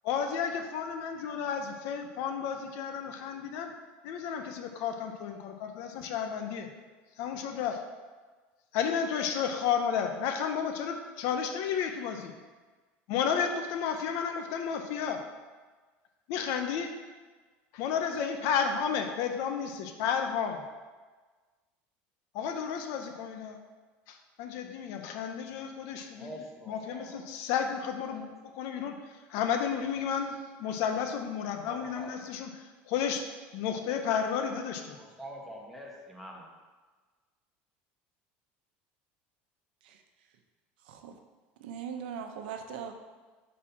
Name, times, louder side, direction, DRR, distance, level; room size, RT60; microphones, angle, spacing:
voice 1, 0.1-3.7 4.0-6.7 7.2-7.8 8.7-12.3 13.1-15.2 16.3-16.9 17.7-20.6 22.3-23.6 24.1-26.3 26.7-28.2 28.5-29.0 29.3-30.3 30.6-32.5 32.9-33.2 33.5-35.0, left 7 dB, 70° left, 5 dB, 0.7 m, -32 dB
voice 2, 26.1-27.2 28.1-28.3 29.8-30.0 31.7-32.3 35.0-36.5, equal, ahead, -2 dB, 1.4 m, -45 dB
voice 3, 40.8-41.2 41.6-42.9, right 7 dB, 85° right, 5 dB, 0.9 m, -40 dB
6.1 x 4.1 x 5.8 m, 1.4 s
supercardioid pair, 125°, 5 cm